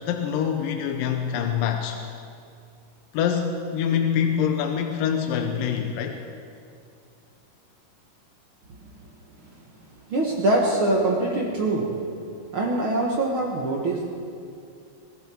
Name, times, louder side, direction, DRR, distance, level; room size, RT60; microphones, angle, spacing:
voice 1, 0.1-2.0 3.1-6.2, left 8 dB, 80° left, 4 dB, 2.5 m, -25 dB
voice 2, 10.1-11.9 12.5-14.1, right 2 dB, 55° right, -1 dB, 1.6 m, -23 dB
22.0 x 14.0 x 4.4 m, 2.4 s
omnidirectional pair, 3.9 m